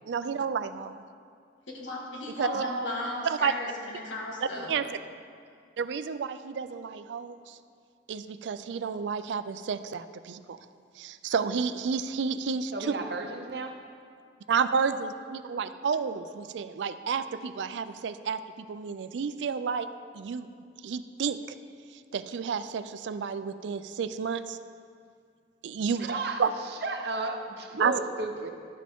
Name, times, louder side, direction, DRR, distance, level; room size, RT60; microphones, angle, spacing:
voice 1, 0.1-1.0 2.4-2.6 3.2-3.5 4.7-4.9 5.8-7.6 8.1-10.6 11.0-12.9 14.5-19.9 20.1-20.5 20.8-21.6 22.1-24.6 25.6-26.1 26.4-26.5 27.8-27.9, right 6 dB, 75° right, 12 dB, 0.4 m, -30 dB
voice 2, 1.7-4.8, left 1 dB, 85° left, -2 dB, 1.7 m, -36 dB
voice 3, 2.5-2.9 12.7-13.7 26.0-26.4 26.8-28.5, right 3 dB, 60° right, 4 dB, 0.7 m, -33 dB
11.5 x 7.5 x 3.5 m, 2.3 s
head